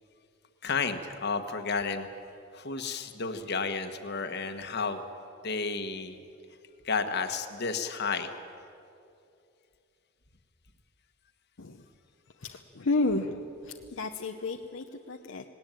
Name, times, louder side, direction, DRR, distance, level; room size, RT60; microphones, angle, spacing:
voice 1, 0.6-2.1 2.5-5.0 5.4-6.2 6.8-8.3, left 4 dB, 55° left, 8 dB, 1.4 m, -32 dB
voice 2, 12.4-15.4, left 2 dB, 75° left, 4 dB, 0.8 m, -32 dB
19.0 x 18.5 x 9.1 m, 2.6 s
head